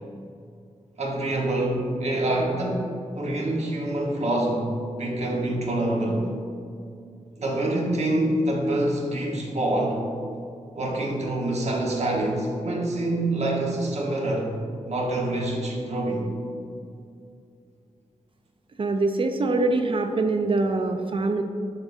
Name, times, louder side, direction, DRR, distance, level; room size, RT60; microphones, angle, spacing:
voice 1, 1.0-2.9 3.1-4.7 5.0-6.3 7.4-10.0 10.7-14.5 14.9-16.3, right 1 dB, 60° right, -2 dB, 1.3 m, -26 dB
voice 2, 18.8-21.4, right 3 dB, 45° right, 6 dB, 0.4 m, -24 dB
7.2 x 6.3 x 2.7 m, 2.5 s
wide cardioid pair, 90°, 13 cm